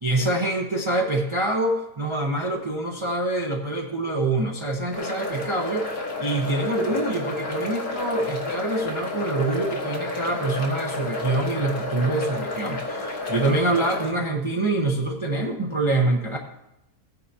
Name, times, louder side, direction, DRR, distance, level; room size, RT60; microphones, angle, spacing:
voice 1, 0.0-16.4, right 2 dB, 25° right, 0 dB, 0.7 m, -25 dB
sound 1, 4.9-14.1, left 2 dB, 85° left, 2.0 m, -31 dB
15.5 x 9.3 x 2.8 m, 0.89 s
omnidirectional pair, 1.6 m